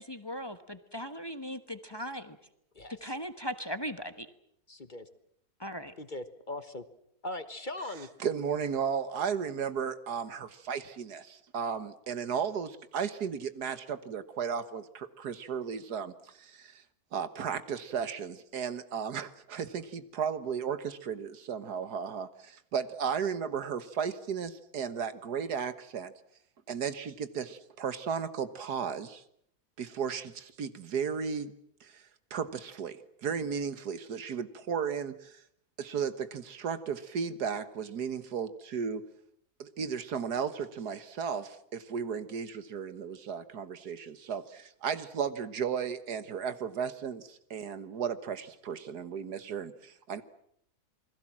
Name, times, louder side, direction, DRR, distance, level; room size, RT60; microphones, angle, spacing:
voice 1, 0.0-2.4 3.0-4.3 5.6-5.9, equal, 15° left, 10 dB, 1.1 m, -38 dB
voice 2, 2.7-3.1 4.7-5.1 6.0-6.8 7.2-8.1, left 2 dB, 35° left, 11 dB, 1.3 m, -40 dB
voice 3, 8.2-16.8 17.1-26.1 26.7-29.2 29.8-31.5 31.8-32.0 32.3-35.4 35.8-39.0 39.6-50.2, right 7 dB, 85° right, 12 dB, 1.9 m, -35 dB
28.5 x 21.5 x 7.5 m, 0.70 s
omnidirectional pair, 1.7 m